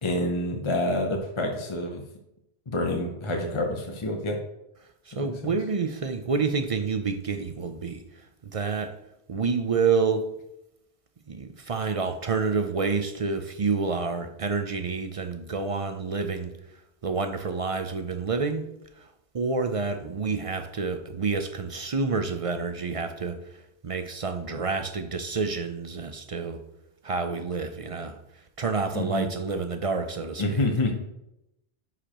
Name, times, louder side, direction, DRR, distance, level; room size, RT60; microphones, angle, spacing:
voice 1, 0.0-2.0 2.7-4.4 5.2-5.5 28.9-29.2 30.4-30.9, left 1 dB, 30° left, 2 dB, 0.7 m, -27 dB
voice 2, 5.1-8.0 8.5-8.9 9.3-10.3 11.3-16.5 17.0-18.7 19.0-19.1 19.3-23.4 23.8-26.6 27.0-28.2 28.6-30.6, right 4 dB, 45° right, 8 dB, 0.5 m, -28 dB
11.0 x 4.9 x 3.0 m, 0.85 s
omnidirectional pair, 1.2 m